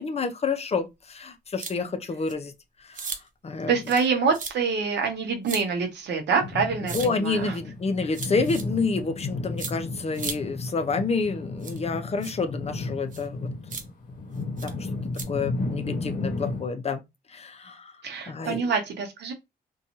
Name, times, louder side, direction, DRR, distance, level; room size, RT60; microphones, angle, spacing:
voice 1, 0.0-2.5 2.9-3.1 3.4-3.7 6.8-13.5 14.3-14.7 15.3-17.0 17.3-17.9 18.3-18.6, left 4 dB, 40° left, 0.5 m, -29 dB
sound 1, 1.6-1.7 2.3-2.4 2.9-3.2 3.8-4.1 4.3-4.5 5.4-5.6 6.9-7.1 8.1-8.6 9.6-9.7 10.1-10.4 11.6-11.8 12.2-12.3 13.1-13.3 13.7-13.8 14.6-14.7 15.1-15.2, right 5 dB, 50° right, 0.5 m, -35 dB
voice 2, 3.7-7.6 18.0-19.3, right 5 dB, 85° right, 0.7 m, -26 dB
sound 2, 6.4-16.6, left 3 dB, 55° left, 0.8 m, -33 dB
2.6 x 2.3 x 2.8 m
cardioid pair, 90°, 17 cm